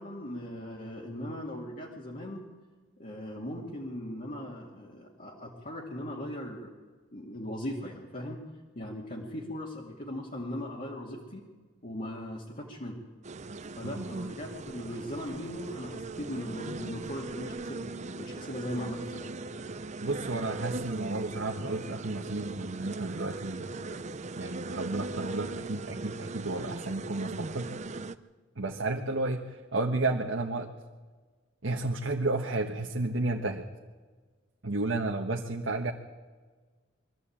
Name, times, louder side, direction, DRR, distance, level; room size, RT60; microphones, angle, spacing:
voice 1, 0.0-2.4 3.0-6.7 7.1-8.4 8.7-11.5 11.8-13.0 13.8-17.9 18.1-19.3, left 1 dB, 45° left, -3 dB, 2.4 m, -39 dB
sound 1, 13.2-28.2, right 3 dB, 35° right, 0.7 m, -39 dB
voice 2, 20.0-23.7 24.4-27.7 28.6-30.7 31.6-33.7 34.6-35.9, right 2 dB, 70° right, 1 dB, 1.3 m, -32 dB
22.5 x 14.0 x 8.7 m, 1.4 s
head